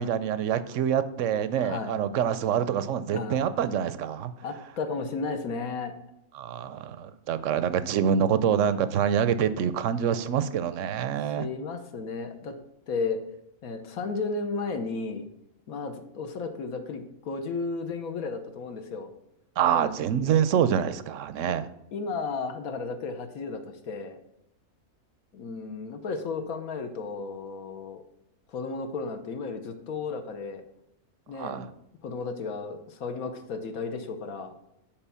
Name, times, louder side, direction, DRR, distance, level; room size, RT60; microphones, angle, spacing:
voice 1, 0.0-4.3 6.4-11.5 19.6-21.7 31.4-31.7, right 8 dB, 65° right, 13 dB, 0.8 m, -26 dB
voice 2, 1.5-2.0 3.1-3.4 4.4-5.9 11.2-12.6 12.9-13.2 13.6-15.2 15.7-19.1 19.7-19.9 21.5-21.6 21.9-24.2 25.3-28.0 28.5-30.6 31.3-31.6 32.0-34.5, left 4 dB, 65° left, 7 dB, 1.4 m, -34 dB
8.9 x 4.4 x 6.8 m, 0.83 s
omnidirectional pair, 1.6 m